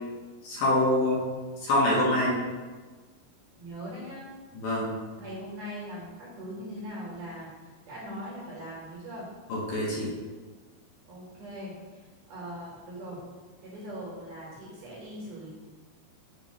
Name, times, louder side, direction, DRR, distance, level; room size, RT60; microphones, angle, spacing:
voice 1, 0.4-1.2 1.6-2.4 4.6-4.9 9.5-10.1, left 1 dB, 70° left, -5 dB, 2.3 m, -25 dB
voice 2, 3.6-4.3 5.2-7.5 7.9-9.3 11.1-13.2 13.6-15.5, equal, 60° right, -6 dB, 2.4 m, -40 dB
7.3 x 3.0 x 5.3 m, 1.3 s
omnidirectional pair, 5.3 m